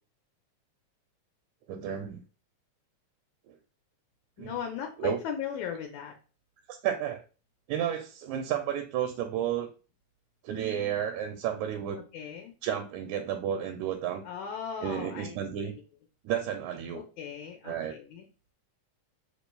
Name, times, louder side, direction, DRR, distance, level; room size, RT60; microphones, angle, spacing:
voice 1, 1.7-2.2 3.5-3.6 4.4-4.5 5.0-5.2 6.7-7.2 7.7-9.7 10.4-12.0 12.6-14.2 14.8-15.7 16.2-17.0 17.6-17.9, right 9 dB, 80° right, 5 dB, 1.8 m, -32 dB
voice 2, 4.4-6.1 12.1-12.5 14.3-15.4 16.9-18.3, left 8 dB, 80° left, 3 dB, 2.0 m, -37 dB
5.6 x 4.1 x 2.2 m, 0.34 s
omnidirectional pair, 3.4 m